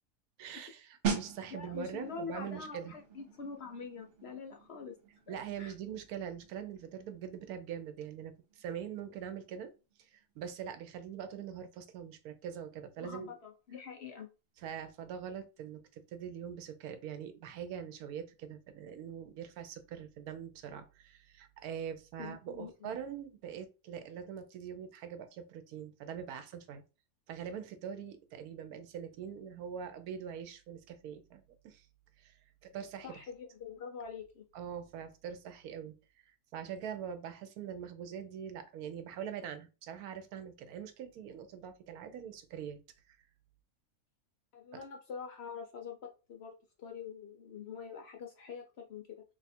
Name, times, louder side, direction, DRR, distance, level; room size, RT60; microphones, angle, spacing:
voice 1, 0.4-2.9 5.3-9.7 10.0-13.4 14.6-26.8 27.3-31.9 32.2-32.4 32.6-33.2 34.5-35.9 36.3-42.8 43.1-43.2 44.7-44.8, right 8 dB, 85° right, 1.1 m, -43 dB
sound 1, 1.0-11.5 11.8-12.1, right 6 dB, 60° right, 1.0 m, -43 dB
voice 2, 1.5-5.0 5.3-5.7 13.0-14.3 22.2-22.9 33.0-34.5 44.5-46.5 46.8-49.2, left 5 dB, 60° left, 0.7 m, -45 dB
2.7 x 2.4 x 4.2 m
omnidirectional pair, 1.5 m